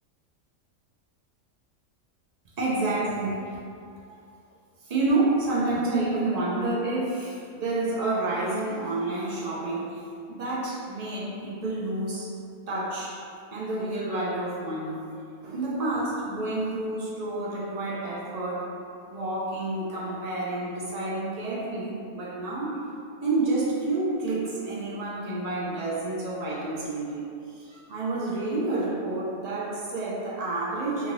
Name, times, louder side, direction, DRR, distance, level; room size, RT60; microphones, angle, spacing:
voice 1, 2.6-3.4 4.0-4.2 4.8-10.0 10.3-12.3 12.7-13.2 13.5-15.0 15.4-18.7 19.1-22.8 23.2-31.1, right 2 dB, 60° right, -6 dB, 0.4 m, -29 dB
2.7 x 2.5 x 3.0 m, 2.4 s
omnidirectional pair, 1.3 m